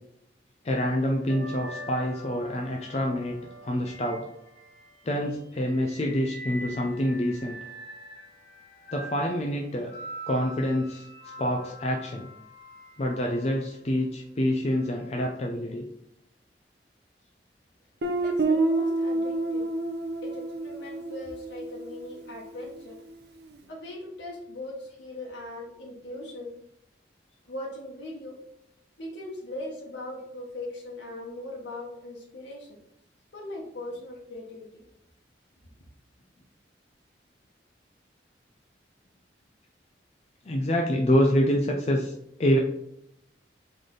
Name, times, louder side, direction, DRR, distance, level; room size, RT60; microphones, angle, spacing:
voice 1, 0.6-3.4 3.6-4.3 5.0-7.6 8.9-9.9 10.3-11.1 11.4-12.3 13.0-15.9 40.5-42.1 42.4-42.6, equal, 35° left, 1 dB, 0.4 m, -26 dB
sound 1, 0.7-5.0 5.5-13.6 14.7-14.9, right 1 dB, 55° left, 1.6 m, -44 dB
Guitar, 18.0-22.7, right 2 dB, 65° right, 0.6 m, -29 dB
voice 2, 18.2-19.7 20.2-23.0 23.7-26.5 27.4-28.4 29.0-32.8 33.3-34.8, left 1 dB, 85° left, -3 dB, 1.1 m, -39 dB
4.0 x 3.3 x 3.9 m, 0.80 s
head